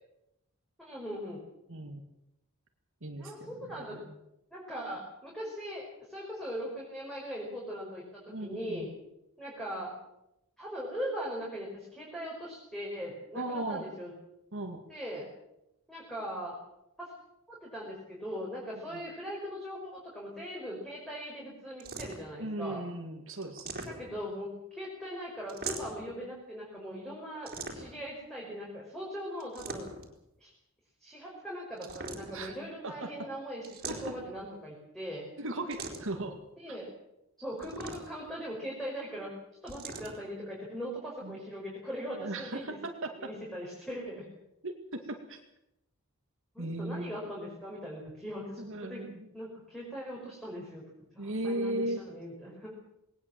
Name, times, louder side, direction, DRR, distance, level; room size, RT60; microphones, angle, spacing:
voice 1, 0.8-1.4 3.2-4.0 4.5-8.9 9.4-9.9 10.6-14.1 14.9-15.3 15.9-16.5 17.0-17.1 17.5-22.8 23.9-29.9 30.4-30.5 31.0-35.2 36.6-36.9 37.4-39.3 39.6-42.8 43.2-44.3 46.5-49.1 49.3-50.8 51.1-52.7, equal, ahead, -4 dB, 5.2 m, -40 dB
voice 2, 1.7-2.0 3.0-4.1 8.3-8.9 13.3-13.9 14.5-14.8 18.9-19.0 22.4-23.9 32.3-32.6 32.8-33.3 33.9-34.2 35.4-36.4 36.7-36.8 41.2-41.4 42.2-42.8 43.0-43.3 44.6-45.4 46.6-47.2 48.6-49.3 51.2-52.0, right 1 dB, 60° right, 4 dB, 2.2 m, -37 dB
sound 1, 21.8-22.4 23.4-24.3 25.5-26.1 27.5-28.1 29.4-30.2 31.8-32.5 33.6-34.4 35.7-36.3 37.6-38.3 39.7-40.2, right 3 dB, 45° right, 3.8 m, -41 dB
20.0 x 19.0 x 7.7 m, 0.85 s
head